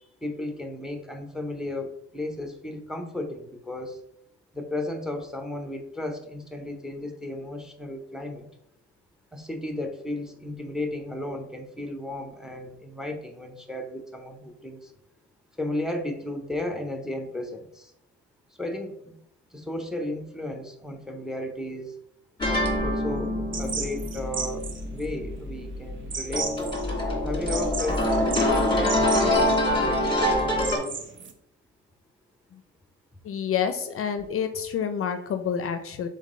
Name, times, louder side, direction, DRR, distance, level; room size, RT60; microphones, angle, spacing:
voice 1, 0.0-4.0 4.5-8.5 9.3-14.9 15.6-17.9 18.6-19.2 19.5-22.0 22.8-26.7 27.2-30.9, left 1 dB, ahead, 5 dB, 0.6 m, -34 dB
sound 1, 22.4-30.8, left 1 dB, 15° left, 1.4 m, -25 dB
sound 2, 23.5-31.3, right 5 dB, 40° right, 0.6 m, -36 dB
voice 2, 33.2-36.1, left 7 dB, 50° left, 8 dB, 0.4 m, -28 dB
3.8 x 3.7 x 3.6 m, 0.76 s
cardioid pair, 90°, 30 cm